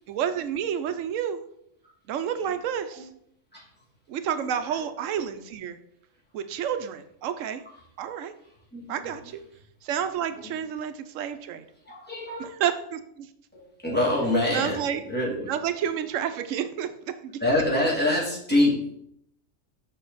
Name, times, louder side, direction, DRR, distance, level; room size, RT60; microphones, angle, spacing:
voice 1, 0.1-1.4 2.1-3.1 4.1-5.8 6.3-7.6 8.0-8.3 8.9-9.4 9.8-11.7 12.4-13.3 14.5-15.0 15.5-17.4, right 9 dB, 85° right, 10 dB, 1.0 m, -30 dB
voice 2, 4.3-4.8 8.7-9.1 10.4-10.5 11.9-12.5 13.5-15.5 17.4-18.9, left 1 dB, 10° left, -6 dB, 2.3 m, -26 dB
6.5 x 5.5 x 4.0 m, 0.72 s
omnidirectional pair, 1.3 m